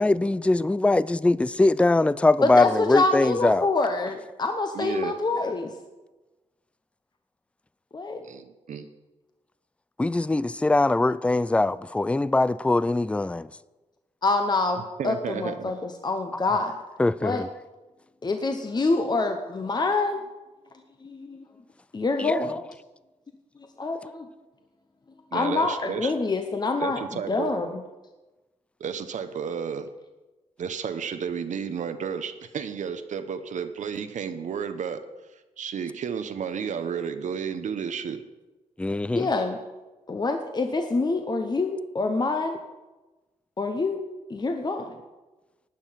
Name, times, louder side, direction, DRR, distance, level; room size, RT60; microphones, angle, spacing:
voice 1, 0.0-3.7 10.0-13.5 17.0-17.5 22.3-22.4 38.8-39.3, left 2 dB, 10° left, 0.3 m, -22 dB
voice 2, 2.4-5.7 7.9-8.2 14.2-16.8 17.2-17.4 18.2-20.2 21.0-21.4 21.9-22.6 23.8-24.3 25.3-27.8 39.2-39.6 40.1-42.6 43.6-44.0 44.3-44.9, left 3 dB, 35° left, 0.9 m, -26 dB
voice 3, 4.7-5.1 8.2-8.9 15.0-15.7 25.3-26.1 26.8-27.5 28.8-29.9 30.6-35.0 35.6-38.2, right 7 dB, 75° right, 0.8 m, -32 dB
12.0 x 8.8 x 5.8 m
cardioid pair, 80°, 13 cm